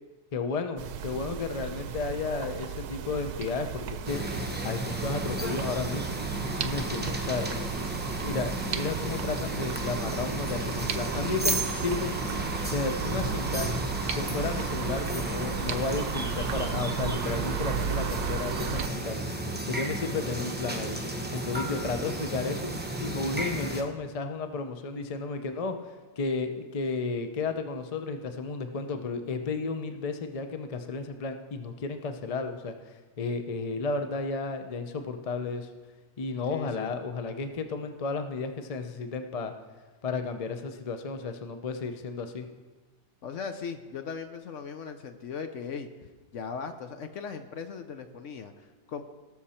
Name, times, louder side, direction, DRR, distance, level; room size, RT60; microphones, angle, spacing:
voice 1, 0.3-4.2 4.6-6.2 6.6-7.5 8.2-12.1 12.7-13.7 14.2-19.2 19.7-21.0 21.3-22.7 23.0-25.8 26.2-32.7 33.2-35.7 36.2-39.5 40.0-42.5, left 4 dB, 45° left, 7 dB, 0.5 m, -33 dB
sound 1, 0.8-18.9, right 8 dB, 75° right, 1.2 m, -35 dB
sound 2, 4.1-23.8, right 1 dB, 10° right, 0.6 m, -33 dB
voice 2, 7.5-7.9 36.5-36.9 43.2-45.9 46.3-49.0, left 6 dB, 60° left, 7 dB, 0.9 m, -38 dB
18.0 x 6.7 x 4.3 m, 1.2 s
omnidirectional pair, 1.7 m